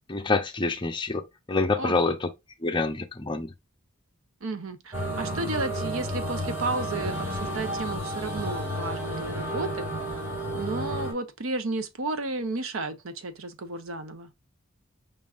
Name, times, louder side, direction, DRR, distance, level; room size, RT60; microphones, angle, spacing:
voice 1, 0.1-2.3 2.6-3.5, left 3 dB, 25° left, 0.7 m, -27 dB
voice 2, 1.8-2.2 4.4-9.9 10.5-14.3, right 2 dB, 90° right, 0.9 m, -33 dB
sound 1, 4.9-11.1, equal, 10° right, 2.1 m, -31 dB
5.4 x 3.7 x 2.5 m
head